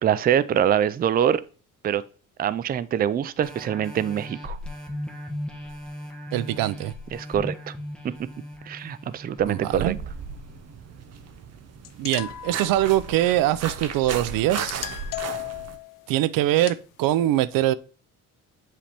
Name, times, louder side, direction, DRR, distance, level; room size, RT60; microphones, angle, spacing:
voice 1, 0.0-1.4 1.8-2.0 2.4-4.6 7.1-7.7 8.7-9.9, right 9 dB, 30° right, 0.3 m, -24 dB
sound 1, 3.4-10.6 11.1-11.2, left 1 dB, 5° left, 1.2 m, -38 dB
voice 2, 6.3-6.9 9.5-10.0 12.0-14.9 16.1-17.7, right 14 dB, 90° right, 0.5 m, -23 dB
sound 2, 9.7-15.8, right 6 dB, 50° right, 0.8 m, -36 dB
sound 3, 11.8-13.3 14.6-16.1 16.7-16.8, left 15 dB, 75° left, 0.5 m, -36 dB
7.6 x 3.4 x 4.2 m
cardioid pair, 110°, 33 cm